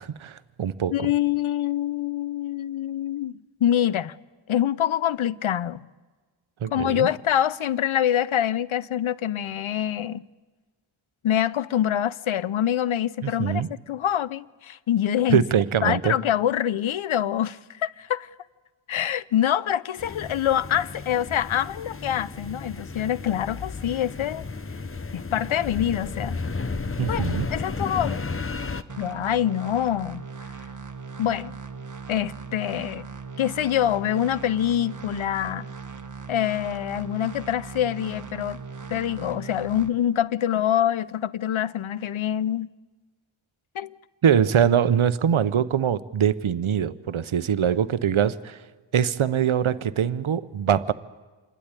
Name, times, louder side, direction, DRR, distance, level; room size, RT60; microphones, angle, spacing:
voice 1, 0.0-1.1 6.6-7.1 13.2-13.7 15.3-16.2 27.0-27.5 44.2-48.6 48.9-50.9, right 8 dB, 80° right, 0.8 m, -23 dB
voice 2, 0.9-4.1 4.5-5.8 6.7-10.2 11.2-15.4 15.8-18.3 18.9-24.5 25.1-26.4 27.1-27.2 27.5-28.2 29.0-30.2 31.2-31.5 32.1-33.1 33.4-35.7 36.3-38.6 38.9-42.7 43.7-43.9, left 10 dB, 80° left, 0.6 m, -25 dB
sound 1, 20.0-28.8, left 4 dB, 25° left, 0.8 m, -33 dB
sound 2, 28.9-39.9, right 5 dB, 40° right, 1.5 m, -39 dB
27.0 x 12.0 x 9.7 m
wide cardioid pair, 70°, 48 cm